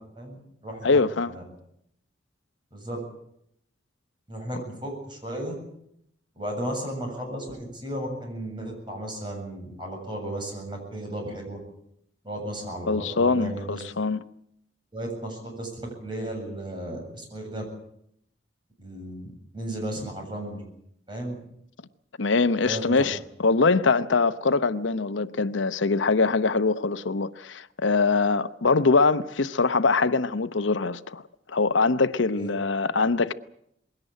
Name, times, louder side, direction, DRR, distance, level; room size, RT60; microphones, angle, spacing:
voice 1, 0.2-1.0 1.3-1.4 2.7-3.0 4.3-5.5 6.4-11.6 12.2-13.8 14.9-17.6 18.8-20.6 21.1-21.4 22.6-23.1 32.4-32.5, right 1 dB, 25° right, 7.6 m, -34 dB
voice 2, 0.8-1.3 12.9-14.2 22.2-31.2 31.5-33.3, left 4 dB, 85° left, 0.8 m, -23 dB
21.5 x 17.5 x 9.1 m
head